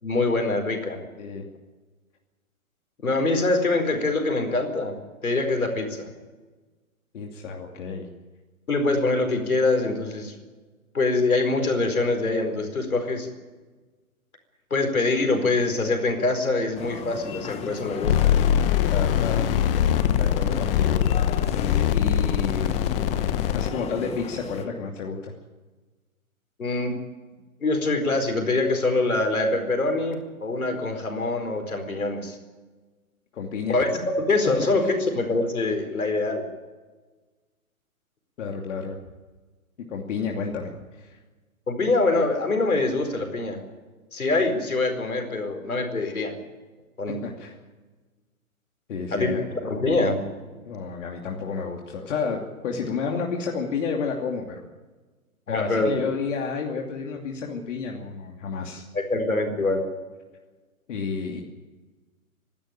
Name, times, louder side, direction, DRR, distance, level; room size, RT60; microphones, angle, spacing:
voice 1, 0.0-1.0 3.0-6.1 8.7-10.3 10.9-13.3 14.7-18.3 26.6-27.0 27.6-32.4 33.7-33.9 34.2-36.4 41.7-43.6 44.1-46.3 47.0-47.2 49.1-50.2 55.5-56.0 58.9-59.8, left 2 dB, 80° left, 5 dB, 4.6 m, -24 dB
voice 2, 7.1-8.1 18.9-19.4 20.2-21.0 21.9-22.8 23.5-25.3 33.3-33.8 38.4-39.0 39.8-40.7 41.0-41.2 47.1-47.6 48.9-49.4 50.6-54.6 55.5-58.9 60.9-61.4, left 5 dB, 55° left, 1 dB, 2.8 m, -30 dB
sound 1, 16.7-24.6, left 7 dB, 15° left, 1.1 m, -35 dB
sound 2, 18.0-23.7, left 10 dB, 40° left, 1.1 m, -22 dB
27.0 x 12.5 x 8.9 m, 1.3 s
figure-of-eight pair, 125°, 42 cm